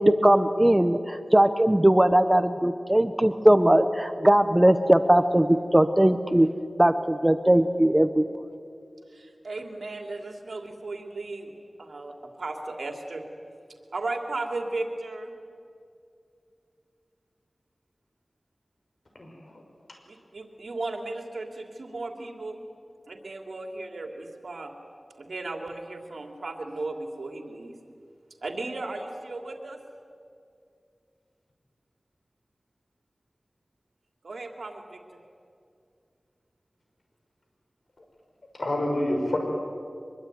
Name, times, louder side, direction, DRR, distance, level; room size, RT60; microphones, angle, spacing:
voice 1, 0.0-6.5 6.8-8.3, right 1 dB, 15° right, 10 dB, 1.1 m, -20 dB
voice 2, 9.1-11.5 11.8-13.2 13.9-15.3 20.1-22.6 23.1-24.7 25.2-27.7 28.4-29.8 34.2-35.2, right 2 dB, 85° right, 3 dB, 3.0 m, -35 dB
voice 3, 38.5-39.4, left 1 dB, 65° left, 2 dB, 6.1 m, -27 dB
24.0 x 23.0 x 9.5 m, 2.4 s
wide cardioid pair, 65°, 0 cm